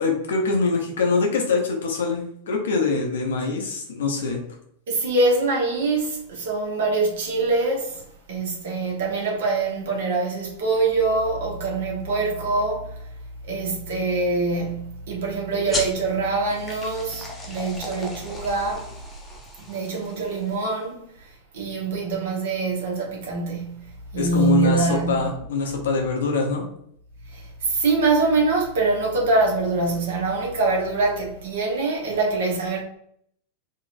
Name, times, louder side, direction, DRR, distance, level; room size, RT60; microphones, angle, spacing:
voice 1, 0.0-4.4 24.2-26.6, left 4 dB, 60° left, 0.8 m, -24 dB
voice 2, 4.9-8.0 8.3-12.9 13.5-18.9 19.6-21.0 21.5-23.8 24.1-25.3 27.3-32.8, right 3 dB, 60° right, 1.1 m, -24 dB
sound 1, 15.7-20.8, left 2 dB, 15° left, 0.8 m, -36 dB
3.9 x 2.9 x 2.6 m
figure-of-eight pair, 90°, 0 cm